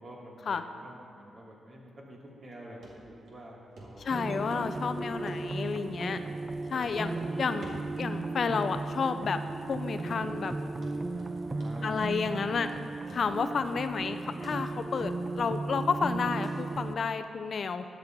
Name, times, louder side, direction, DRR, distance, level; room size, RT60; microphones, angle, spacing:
voice 1, 0.0-4.2 6.0-6.3 11.1-12.0, right 1 dB, 55° right, -3 dB, 2.7 m, -48 dB
Run, 2.8-2.9 3.3-3.4 3.8-3.9 4.1-4.6 4.9-5.8 6.0-6.2 6.4-6.5 6.8-7.3 7.6-8.1 8.5-8.9 9.2-9.3 9.7-9.8 10.1-10.6 10.8-11.3 11.6-12.8 13.1-13.2 13.5-13.6, right 2 dB, 75° right, 2.2 m, -50 dB
voice 2, 4.0-6.2 6.7-7.1 7.4-9.4 9.7-10.5 11.8-12.7 13.1-17.8, left 5 dB, 60° left, 9 dB, 0.5 m, -31 dB
sound 1, 4.1-16.9, right 3 dB, 25° right, 0.6 m, -35 dB
13.0 x 8.2 x 4.5 m, 2.3 s
supercardioid pair, 55°, 0 cm